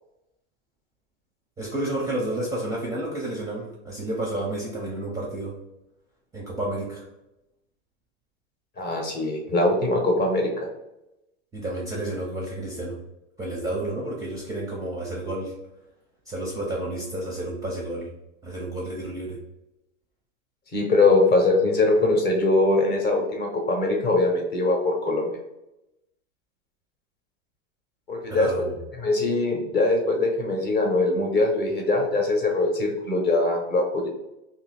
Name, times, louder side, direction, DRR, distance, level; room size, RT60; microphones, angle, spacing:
voice 1, 1.6-5.5 6.3-7.1 11.5-13.0 13.4-15.6 16.3-18.1 18.4-19.4 28.3-28.8, right 1 dB, 10° right, -3 dB, 0.5 m, -30 dB
voice 2, 8.8-10.7 20.7-25.3 28.1-28.5 29.0-34.1, left 2 dB, 25° left, 1 dB, 0.8 m, -22 dB
2.8 x 2.6 x 4.1 m, 0.92 s
hypercardioid pair, 125°, 38 cm